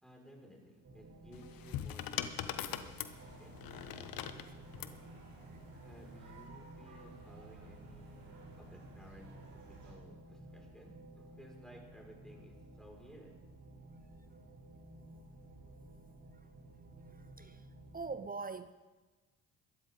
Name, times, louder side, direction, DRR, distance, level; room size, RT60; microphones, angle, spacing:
voice 1, 0.0-4.0 4.2-5.0 5.8-13.3, equal, ahead, -1 dB, 5.8 m, -58 dB
sound 1, 0.8-18.2, right 1 dB, 45° right, 3.8 m, -55 dB
sound 2, 1.3-5.0 6.0-6.4, left 10 dB, 65° left, 1.1 m, -41 dB
sound 3, 3.0-10.0, right 2 dB, 65° right, 5.2 m, -56 dB
voice 2, 17.1-17.6 17.9-18.7, right 4 dB, 25° right, 12 dB, 0.7 m, -42 dB
21.5 x 13.0 x 4.0 m, 1.2 s
hypercardioid pair, 60°, 38 cm